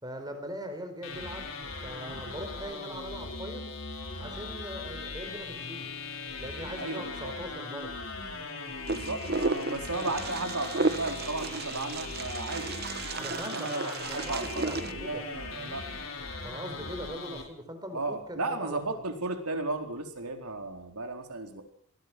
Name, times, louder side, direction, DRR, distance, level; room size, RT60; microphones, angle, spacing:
voice 1, 0.0-3.7 4.2-5.9 6.4-7.9 13.2-15.3 16.4-19.0, equal, 20° right, 7 dB, 4.5 m, -41 dB
sound 1, 1.0-17.4, left 3 dB, 65° left, 5.0 m, -39 dB
voice 2, 6.8-7.3 8.9-12.8 13.5-15.9 17.9-21.6, right 2 dB, 85° right, 5 dB, 4.2 m, -34 dB
Wind, 8.9-14.9, right 3 dB, 45° right, 1.0 m, -33 dB
24.5 x 19.5 x 6.2 m, 0.63 s
head